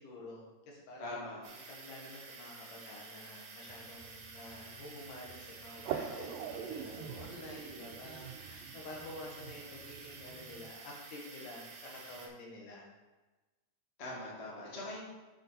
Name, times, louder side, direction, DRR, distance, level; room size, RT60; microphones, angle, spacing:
voice 1, 0.0-1.2 1.5-12.9, left 2 dB, 75° left, -1 dB, 2.9 m, -49 dB
voice 2, 1.0-1.4 7.1-7.2 14.0-15.0, left 1 dB, 25° left, -4 dB, 1.6 m, -42 dB
sound 1, 1.4-12.3, right 4 dB, 65° right, 2.3 m, -51 dB
sound 2, 3.7-10.7, right 8 dB, 85° right, 2.3 m, -45 dB
8.2 x 6.4 x 3.9 m, 1.2 s
omnidirectional pair, 3.8 m